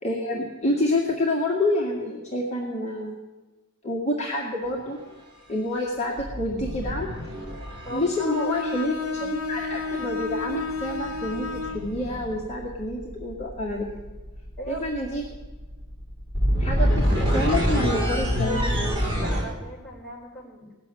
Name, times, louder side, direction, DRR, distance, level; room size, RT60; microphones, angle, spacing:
voice 1, 0.0-3.2 3.8-5.0 5.5-7.1 7.9-14.0 14.7-15.2 16.6-18.6, left 1 dB, 30° left, -4 dB, 1.9 m, -28 dB
sound 1, 4.7-4.9 6.2-8.3 10.1-19.4, equal, 25° right, 4.7 m, -27 dB
voice 2, 7.8-8.9 9.2-9.4 14.6-14.9 19.2-20.8, right 1 dB, 5° left, -5 dB, 3.6 m, -37 dB
Bowed string instrument, 8.1-11.9, left 4 dB, 80° left, 1.1 m, -31 dB
18.0 x 7.4 x 9.7 m, 1.2 s
head